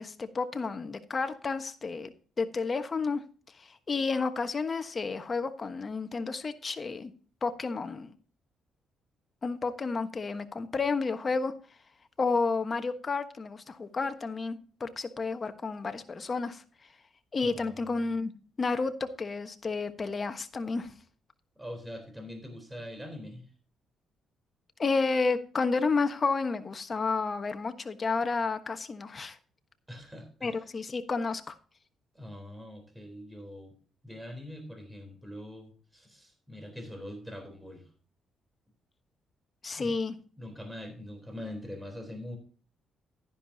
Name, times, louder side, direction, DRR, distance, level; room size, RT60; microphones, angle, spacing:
voice 1, 0.0-2.1 2.4-3.2 3.6-7.1 7.4-8.1 9.4-11.5 12.2-16.6 17.3-18.3 18.6-20.9 24.8-29.4 30.4-31.5 39.6-40.1, left 4 dB, 35° left, 9 dB, 1.2 m, -31 dB
voice 2, 17.4-18.1 21.6-23.5 29.9-30.7 32.1-33.7 34.0-37.9 39.8-40.0 40.4-42.4, left 1 dB, 10° right, 5 dB, 3.7 m, -43 dB
12.0 x 10.5 x 2.8 m, 0.39 s
cardioid pair, 90°, 0 cm